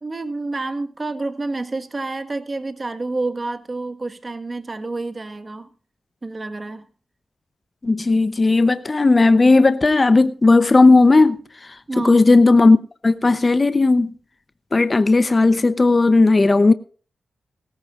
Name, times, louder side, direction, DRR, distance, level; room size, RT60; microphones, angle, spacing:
voice 1, 0.0-5.7 6.2-6.9 11.9-12.2, right 3 dB, 35° right, 1.6 m, -28 dB
voice 2, 7.8-11.8 12.0-12.8 13.0-14.1 14.7-16.7, left 3 dB, 35° left, 0.8 m, -15 dB
17.5 x 14.5 x 2.5 m
cardioid pair, 55°, 0 cm